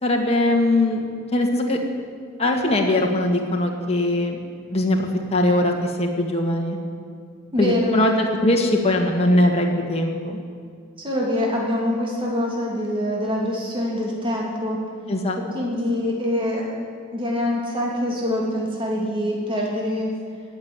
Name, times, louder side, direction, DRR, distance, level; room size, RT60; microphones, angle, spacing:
voice 1, 0.0-1.1 1.3-1.8 2.4-4.4 4.7-6.8 7.6-10.4 15.1-15.7, left 1 dB, 30° left, 1 dB, 2.0 m, -21 dB
voice 2, 7.5-8.3 11.0-14.8 15.5-16.7 17.1-20.1, left 1 dB, 25° right, -3 dB, 2.9 m, -24 dB
18.5 x 7.6 x 9.9 m, 2.2 s
head